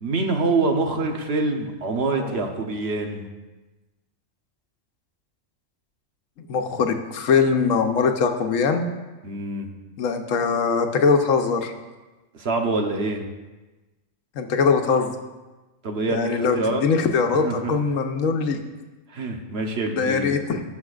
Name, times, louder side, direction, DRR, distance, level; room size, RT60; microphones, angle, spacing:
voice 1, 0.0-3.3 9.2-9.7 12.3-13.2 15.8-16.8 17.4-17.7 19.1-20.3, right 3 dB, 55° right, 3 dB, 1.1 m, -25 dB
voice 2, 6.5-8.8 10.0-11.7 14.3-15.2 16.1-18.6 19.9-20.6, left 5 dB, 90° left, 5 dB, 1.2 m, -22 dB
17.5 x 6.0 x 2.4 m, 1.2 s
omnidirectional pair, 1.3 m